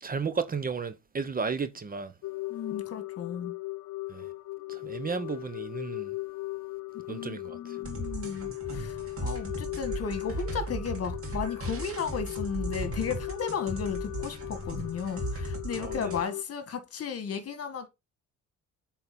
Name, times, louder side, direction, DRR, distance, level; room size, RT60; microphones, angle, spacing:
voice 1, 0.0-2.1 4.1-4.3 4.7-6.1 7.1-7.8 15.8-16.1, right 5 dB, 30° right, 0.8 m, -33 dB
sound 1, 2.2-16.4, left 20 dB, 70° left, 0.7 m, -38 dB
voice 2, 2.5-3.5 7.1-17.9, left 6 dB, 50° left, 1.6 m, -35 dB
sound 2, 7.8-16.2, right 1 dB, 45° right, 2.5 m, -37 dB
7.9 x 4.1 x 4.2 m
cardioid pair, 90°, 30 cm